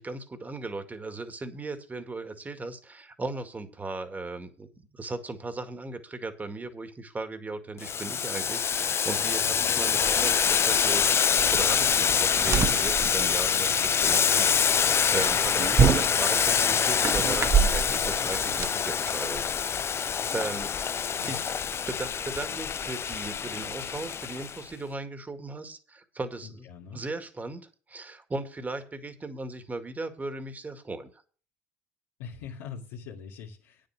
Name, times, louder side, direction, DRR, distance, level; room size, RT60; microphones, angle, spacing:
voice 1, 0.0-4.7 4.9-11.1 11.5-19.4 20.3-20.7 21.2-21.4 21.9-26.7 26.9-31.2, right 3 dB, 20° right, 8 dB, 2.0 m, -37 dB
Boiling, 7.8-24.6, left 7 dB, 35° left, 0.5 m, -25 dB
sound 1, 11.4-18.7, right 6 dB, 35° right, 1.3 m, -28 dB
voice 2, 26.4-27.0 32.2-33.9, left 6 dB, 80° left, -5 dB, 2.1 m, -43 dB
9.3 x 7.8 x 6.4 m, 0.39 s
hypercardioid pair, 80°, 8 cm